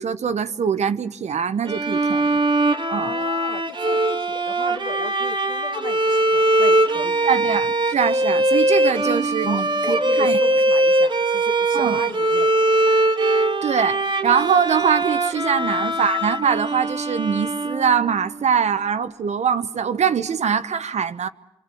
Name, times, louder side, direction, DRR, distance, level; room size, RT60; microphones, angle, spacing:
voice 1, 0.0-2.4 2.9-3.1 7.2-10.4 11.7-12.0 13.6-21.3, right 7 dB, 60° right, 0.9 m, -23 dB
Bowed string instrument, 1.7-18.2, right 2 dB, 40° right, 1.6 m, -21 dB
voice 2, 2.9-7.3 9.4-12.5 15.6-15.7, left 5 dB, 80° left, 1.7 m, -35 dB
26.5 x 23.0 x 7.7 m
supercardioid pair, 50°, 13 cm